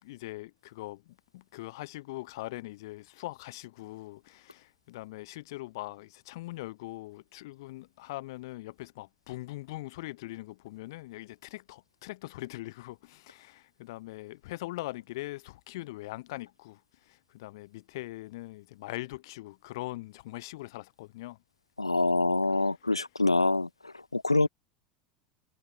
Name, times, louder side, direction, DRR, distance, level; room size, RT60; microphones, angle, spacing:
voice 1, 0.0-21.4 22.6-22.9 24.4-24.5, left 19 dB, 60° left, 4.9 m, -42 dB
voice 2, 21.8-23.7 24.1-24.5, left 2 dB, 90° left, 0.7 m, -25 dB
figure-of-eight pair, 80°, 3 cm